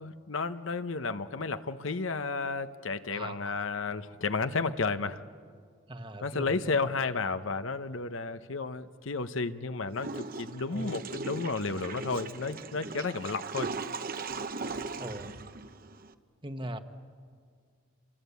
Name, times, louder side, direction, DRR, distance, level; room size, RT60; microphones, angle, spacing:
voice 1, 0.0-5.2 6.2-13.7, left 4 dB, 70° left, 0.9 m, -32 dB
voice 2, 3.1-3.6 5.9-6.8 10.7-10.9 15.0-15.4 16.4-16.8, right 1 dB, 25° right, 1.2 m, -39 dB
Water / Toilet flush, 9.9-16.1, right 4 dB, 45° right, 1.0 m, -38 dB
28.5 x 24.0 x 8.3 m
head